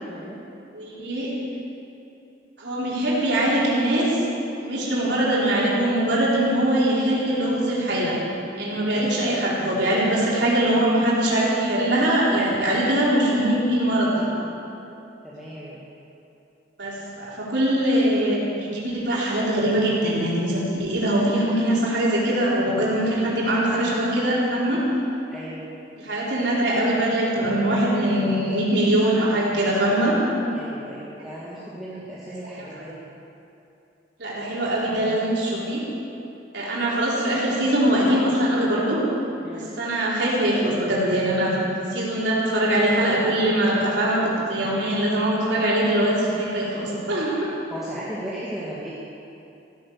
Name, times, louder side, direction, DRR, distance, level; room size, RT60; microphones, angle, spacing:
voice 1, 0.7-1.3 2.6-4.2 4.6-8.2 8.6-14.3 16.8-24.8 26.0-30.1 32.6-32.8 34.2-35.8 36.5-39.0 39.5-47.5, right 1 dB, 70° right, -6 dB, 4.2 m, -22 dB
voice 2, 15.2-15.8 24.7-24.9 25.3-25.7 27.7-28.5 30.3-33.0 39.4-39.7 47.5-48.9, equal, ahead, -9 dB, 2.0 m, -37 dB
16.0 x 10.5 x 6.6 m, 2.8 s
head